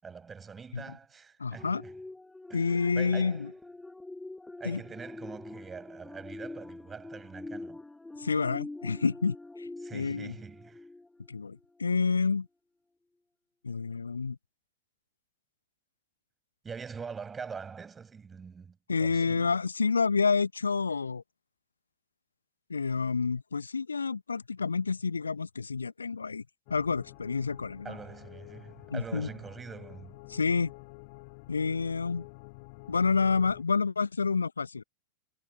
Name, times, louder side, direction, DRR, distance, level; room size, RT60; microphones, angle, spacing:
voice 1, 0.0-1.9 2.5-3.5 4.6-7.8 9.8-10.9 16.6-19.5 27.8-30.2, right 5 dB, 15° right, 7.2 m, -44 dB
voice 2, 1.4-1.8 2.5-3.5 4.6-4.8 8.2-10.3 11.3-12.5 13.6-14.4 18.9-21.2 22.7-26.4 26.7-28.0 28.9-29.3 30.3-30.7 31.5-32.3 32.9-34.8, left 5 dB, 75° left, 1.2 m, -29 dB
sound 1, 1.6-11.4 11.9-12.1, left 2 dB, 5° left, 1.8 m, -45 dB
sound 2, 26.7-33.6, left 29 dB, 45° left, 2.1 m, -49 dB
figure-of-eight pair, 90°, 0 cm